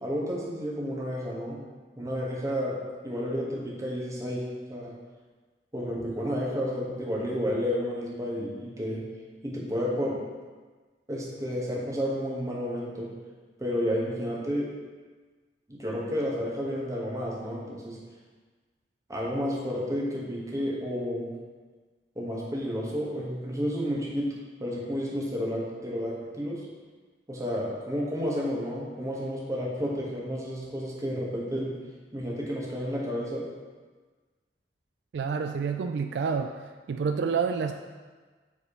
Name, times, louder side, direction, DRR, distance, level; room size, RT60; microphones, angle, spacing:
voice 1, 0.0-1.6 2.0-4.9 5.7-9.0 9.4-10.2 11.1-13.1 13.6-14.7 15.7-18.0 19.1-21.4 22.1-26.7 27.3-31.8 32.1-33.5, equal, 20° right, -4 dB, 1.2 m, -31 dB
voice 2, 35.1-36.5 36.9-37.7, right 6 dB, 70° right, 6 dB, 0.3 m, -28 dB
7.4 x 3.2 x 4.8 m, 1.4 s
head